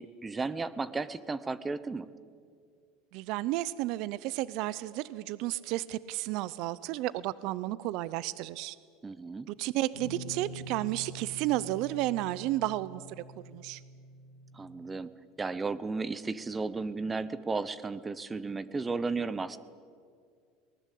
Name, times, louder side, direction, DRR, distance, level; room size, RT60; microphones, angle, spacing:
voice 1, 0.0-2.1 9.0-9.5 14.5-15.1 15.4-19.6, right 4 dB, 15° right, 16 dB, 0.8 m, -34 dB
voice 2, 3.1-8.8 9.5-13.8, right 16 dB, 60° right, 18 dB, 0.6 m, -32 dB
sound 1, 9.9-14.9, right 2 dB, 75° right, 5.3 m, -45 dB
22.5 x 19.0 x 8.4 m, 2.2 s
supercardioid pair, 135°, 0 cm